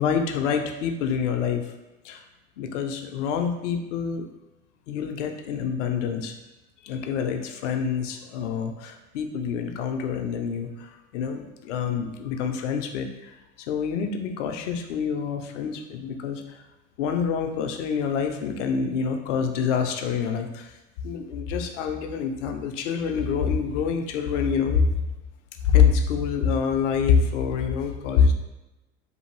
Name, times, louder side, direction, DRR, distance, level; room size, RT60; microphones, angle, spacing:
voice 1, 0.0-1.6 2.0-2.2 2.6-4.3 4.9-6.3 6.8-16.6 17.0-20.8 21.0-25.0 25.6-28.3, left 6 dB, 60° left, 5 dB, 0.5 m, -26 dB
2.6 x 2.5 x 2.9 m, 1.0 s
figure-of-eight pair, 75°, 42 cm